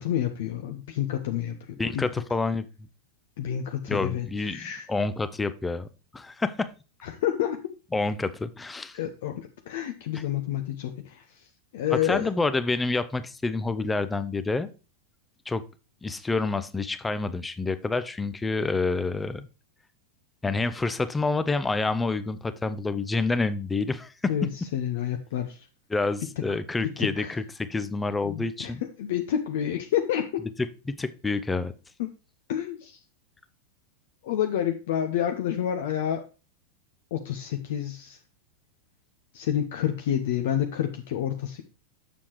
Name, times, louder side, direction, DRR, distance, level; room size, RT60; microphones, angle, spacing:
voice 1, 0.0-1.6 1.9-2.1 3.4-4.8 7.0-7.6 8.9-11.2 11.7-12.3 24.3-25.6 27.0-27.4 28.2-28.7 29.0-30.4 32.0-32.1 32.5-33.0 34.2-36.2 37.1-38.2 39.3-41.6, left 10 dB, 55° left, 5 dB, 0.7 m, -29 dB
voice 2, 1.8-2.6 3.9-5.9 6.1-6.7 7.9-9.0 10.1-10.2 12.0-14.7 15.5-15.6 16.0-19.5 20.4-24.1 25.9-28.8 30.9-31.7, left 3 dB, 10° left, 13 dB, 0.5 m, -28 dB
7.0 x 6.9 x 3.0 m, 0.33 s
figure-of-eight pair, 90°, 0 cm